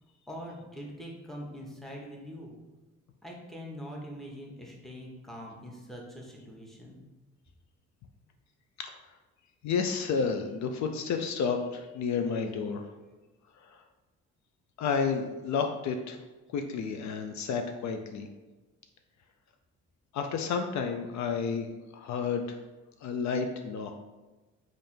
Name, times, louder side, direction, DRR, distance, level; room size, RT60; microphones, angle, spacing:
voice 1, 0.3-2.5 3.2-7.0, equal, ahead, -2 dB, 0.9 m, -43 dB
voice 2, 9.6-12.9 13.6-13.8 14.8-16.2 16.5-18.3 20.1-22.6 23.0-23.9, left 5 dB, 70° left, 5 dB, 0.5 m, -31 dB
3.4 x 2.5 x 4.2 m, 1.2 s
cardioid pair, 90°, 30 cm